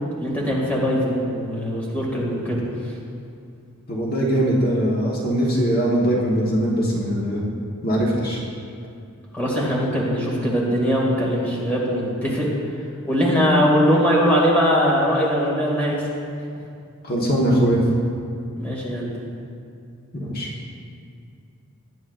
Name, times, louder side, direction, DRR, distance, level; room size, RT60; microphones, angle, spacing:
voice 1, 0.2-2.6 9.3-12.5 13.0-16.0 18.6-19.1, equal, 5° left, -5 dB, 2.3 m, -21 dB
voice 2, 3.9-7.4 7.8-8.4 17.0-17.8 20.1-20.5, right 1 dB, 45° left, -4 dB, 1.4 m, -21 dB
20.5 x 9.2 x 2.6 m, 2.4 s
head